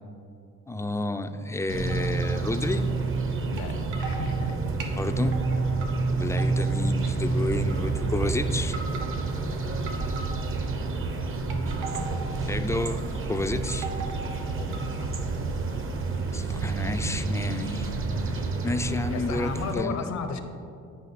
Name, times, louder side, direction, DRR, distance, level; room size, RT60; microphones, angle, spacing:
voice 1, 0.7-2.9 5.0-5.4 6.1-8.8 12.5-13.9 16.3-17.9 18.2-18.3 18.6-20.0, left 2 dB, 10° left, 9 dB, 0.3 m, -30 dB
sound 1, 1.7-19.7, right 3 dB, 45° right, 0.7 m, -29 dB
sound 2, 1.9-2.7 3.6-3.7 3.9-4.3 4.8-5.9 6.2-6.9 7.6-8.1 8.6-9.3 9.9-10.7 11.3-12.2 12.7-13.0 13.3-15.2, right 5 dB, 90° right, 0.9 m, -40 dB
voice 2, 3.4-4.6 11.9-12.6 14.5-15.1 18.9-20.4, left 5 dB, 65° left, 8 dB, 0.7 m, -35 dB
9.1 x 5.0 x 4.1 m, 2.5 s
cardioid pair, 90°, 30 cm